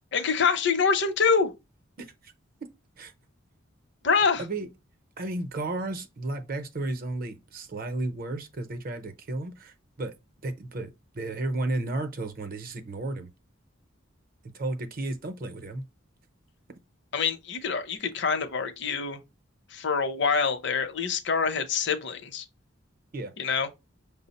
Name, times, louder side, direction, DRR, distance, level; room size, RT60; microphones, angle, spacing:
voice 1, 0.1-1.5 4.0-4.4 17.1-19.2 19.7-22.5 23.4-23.7, left 5 dB, 60° left, 0.7 m, -25 dB
voice 2, 2.0-2.3 2.6-2.7 3.0-3.1 4.4-4.7 5.2-10.1 10.4-13.3 14.4-15.9 16.7-16.8 23.1-23.3, right 2 dB, 45° right, 0.6 m, -33 dB
6.1 x 2.0 x 4.0 m
head